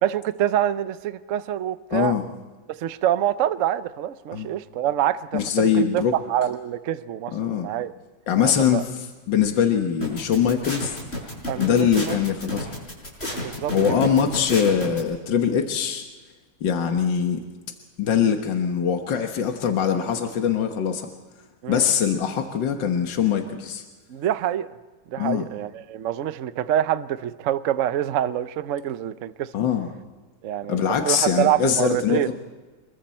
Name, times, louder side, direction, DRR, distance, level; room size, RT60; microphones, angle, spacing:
voice 1, 0.0-2.2 2.8-7.9 8.4-8.8 11.5-12.2 13.3-14.1 21.6-21.9 24.1-24.7 25.1-29.5 30.4-32.3, right 11 dB, 55° right, 13 dB, 0.9 m, -26 dB
voice 2, 1.9-2.2 4.3-4.5 5.3-6.1 7.3-7.7 8.3-10.9 11.6-12.7 13.7-16.0 16.6-17.4 18.0-21.1 21.7-23.8 25.2-25.5 29.5-29.9 30.7-32.3, left 8 dB, 80° left, 4 dB, 2.0 m, -22 dB
sound 1, 10.0-15.0, left 1 dB, 35° left, 6.1 m, -30 dB
28.0 x 22.5 x 4.4 m, 1.3 s
omnidirectional pair, 2.0 m